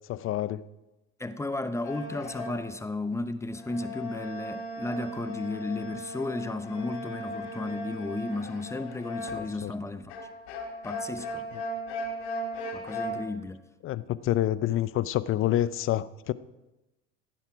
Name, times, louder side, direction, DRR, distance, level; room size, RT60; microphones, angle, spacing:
voice 1, 0.1-0.6 9.4-9.7 13.8-16.3, left 13 dB, 40° left, 0.6 m, -28 dB
voice 2, 1.2-10.1 10.8-11.5 12.7-13.6, left 2 dB, 10° left, 0.8 m, -34 dB
sound 1, 1.8-2.7 3.5-9.6 10.1-13.2, equal, 75° left, 4.9 m, -37 dB
16.0 x 9.9 x 4.7 m
supercardioid pair, 100°, 32 cm